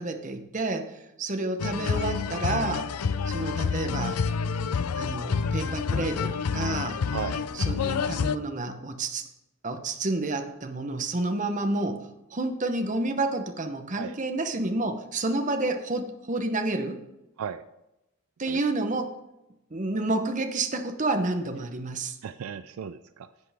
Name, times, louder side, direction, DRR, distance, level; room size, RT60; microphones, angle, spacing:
voice 1, 0.0-2.9 3.3-4.2 5.0-7.0 7.5-9.3 9.6-17.0 18.4-19.2 19.7-22.2, right 2 dB, 35° right, 7 dB, 0.8 m, -30 dB
sound 1, 1.6-8.4, left 5 dB, 90° left, 0.5 m, -28 dB
voice 2, 7.1-7.5 13.9-14.2 17.4-17.6 18.5-18.6 22.2-23.3, right 7 dB, 75° right, 13 dB, 0.4 m, -36 dB
10.5 x 7.9 x 3.4 m, 0.93 s
head